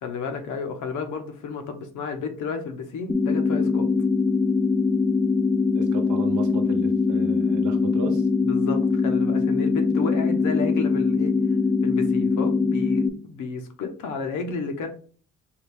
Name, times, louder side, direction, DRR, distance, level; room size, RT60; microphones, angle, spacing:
voice 1, 0.0-3.9 8.4-11.3 11.8-14.9, left 5 dB, 80° left, 6 dB, 0.9 m, -32 dB
sound 1, 3.1-13.1, left 4 dB, 10° left, 0.4 m, -22 dB
voice 2, 5.8-8.3, right 5 dB, 80° right, 6 dB, 0.9 m, -35 dB
4.7 x 2.4 x 3.4 m, 0.43 s
cardioid pair, 90°, 30 cm